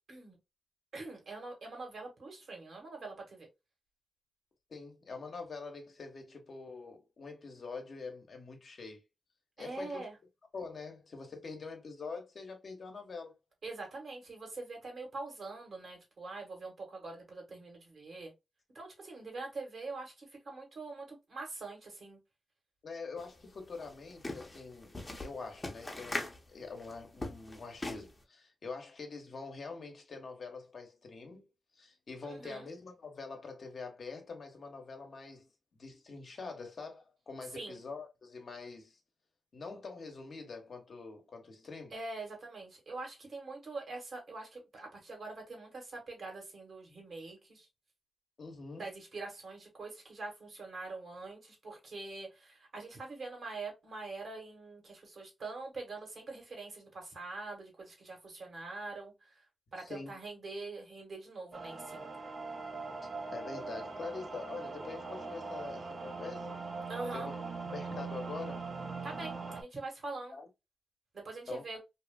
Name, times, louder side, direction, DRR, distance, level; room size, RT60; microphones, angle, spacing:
voice 1, 0.9-3.5 9.6-10.1 13.6-18.3 18.7-22.2 32.2-32.7 37.5-37.8 41.9-47.7 48.8-59.3 59.7-62.1 66.9-67.3 69.0-70.4 71.1-71.8, right 3 dB, 60° right, 1.5 m, -44 dB
voice 2, 4.7-9.0 9.6-10.1 10.5-13.3 22.8-31.5 31.8-39.0 39.5-41.9 48.4-48.8 59.8-60.2 63.3-66.5 67.1-67.4 67.6-68.7 70.3-70.5 71.5-71.6, left 4 dB, 60° left, 0.9 m, -45 dB
sound 1, 23.2-23.3 23.6-28.2, left 2 dB, 25° left, 0.8 m, -41 dB
sound 2, 61.5-69.6, right 4 dB, 45° right, 0.6 m, -41 dB
2.8 x 2.5 x 2.2 m
cardioid pair, 65°, 0 cm